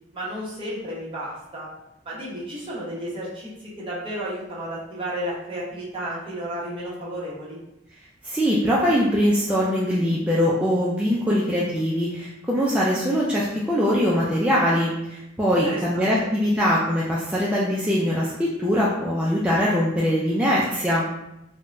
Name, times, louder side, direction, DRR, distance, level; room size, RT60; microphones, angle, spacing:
voice 1, 0.1-1.7 2.0-3.5 3.8-7.6 15.5-16.1, equal, 30° right, -7 dB, 1.0 m, -32 dB
voice 2, 8.2-21.1, equal, 5° right, -6 dB, 0.3 m, -22 dB
3.5 x 2.2 x 2.5 m, 0.88 s
head